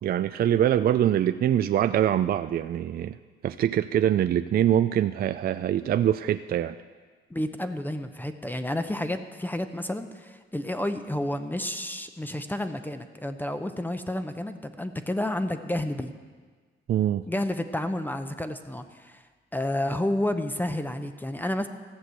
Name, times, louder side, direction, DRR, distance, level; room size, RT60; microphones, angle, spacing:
voice 1, 0.0-3.2 3.4-6.7 16.9-17.3, right 10 dB, 50° right, 11 dB, 0.4 m, -24 dB
voice 2, 7.3-16.1 17.3-19.2 19.5-21.7, left 1 dB, 10° left, 8 dB, 0.7 m, -30 dB
14.0 x 6.1 x 8.1 m, 1.5 s
cardioid pair, 90°, 20 cm